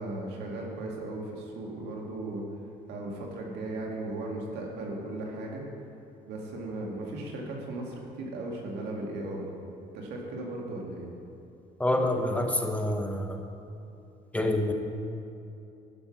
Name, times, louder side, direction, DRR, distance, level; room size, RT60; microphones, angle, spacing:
voice 1, 0.0-2.4 2.9-5.6 6.2-9.5 9.9-11.1, right 2 dB, 85° right, -1 dB, 2.0 m, -36 dB
voice 2, 11.8-13.4 14.3-14.7, left 1 dB, 10° left, 4 dB, 0.9 m, -27 dB
11.5 x 5.6 x 6.0 m, 2.7 s
cardioid pair, 110°, 17 cm